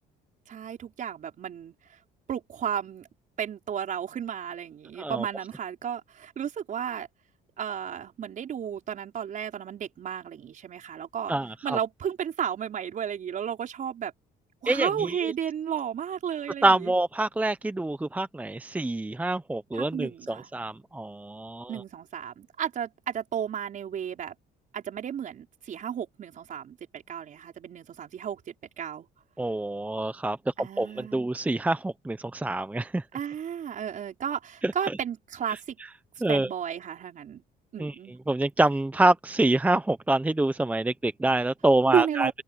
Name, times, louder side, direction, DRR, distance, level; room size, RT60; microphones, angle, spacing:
voice 1, 0.5-1.7 2.3-3.1 3.4-7.1 7.6-11.3 11.6-14.1 14.6-16.9 19.7-20.5 21.7-24.3 24.7-29.1 30.6-31.2 33.1-35.8 36.3-37.4 37.7-38.2 41.8-42.3, right 8 dB, 50° right, 5.0 m, -33 dB
voice 2, 11.3-11.8 14.7-15.3 16.6-21.7 29.4-30.4 30.8-30.9 31.1-33.0 34.6-34.7 36.2-36.5 37.8-37.9 38.3-42.3, right 2 dB, 10° right, 0.7 m, -26 dB
open air
cardioid pair, 110°, 17 cm